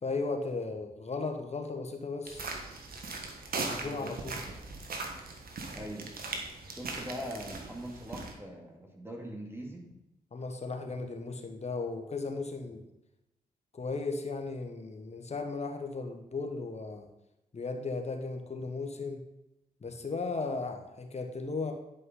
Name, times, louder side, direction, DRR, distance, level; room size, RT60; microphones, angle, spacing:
voice 1, 0.0-2.5 3.6-4.4 10.3-12.8 13.7-17.1 17.5-19.2 19.8-21.7, left 3 dB, 40° left, 4 dB, 1.4 m, -36 dB
sound 1, 2.3-8.3, right 3 dB, 60° right, 1.4 m, -39 dB
voice 2, 3.8-4.1 5.7-6.4 6.7-9.9, equal, 15° right, 0 dB, 2.5 m, -42 dB
9.8 x 5.4 x 3.9 m, 0.89 s
hypercardioid pair, 40°, 17 cm